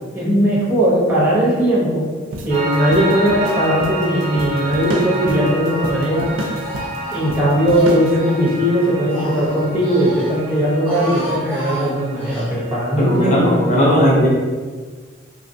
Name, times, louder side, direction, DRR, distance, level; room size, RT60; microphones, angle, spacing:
voice 1, 0.1-2.1 2.4-6.3 7.1-13.4, equal, 10° right, -7 dB, 0.9 m, -18 dB
sound 1, 2.3-8.2, right 1 dB, 75° right, 0.4 m, -30 dB
Piano, 2.5-13.7, right 2 dB, 35° right, 0.6 m, -29 dB
Speech, 4.6-5.3 5.6-8.4 8.8-10.3 10.7-12.5, right 1 dB, 10° left, 1.2 m, -33 dB
voice 2, 13.0-14.3, equal, 40° left, -6 dB, 0.6 m, -15 dB
3.0 x 2.4 x 2.6 m, 1.5 s
head